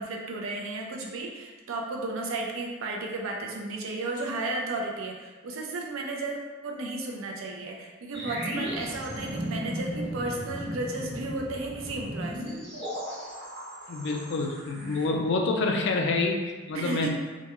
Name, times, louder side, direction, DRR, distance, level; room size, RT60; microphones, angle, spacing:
voice 1, 0.0-12.6 16.7-17.1, right 2 dB, 85° right, 0 dB, 0.4 m, -34 dB
sound 1, 8.1-15.1, equal, 60° right, 0.9 m, -36 dB
voice 2, 13.9-17.1, left 3 dB, 60° left, 2 dB, 0.3 m, -27 dB
2.2 x 2.2 x 2.9 m, 1.3 s
head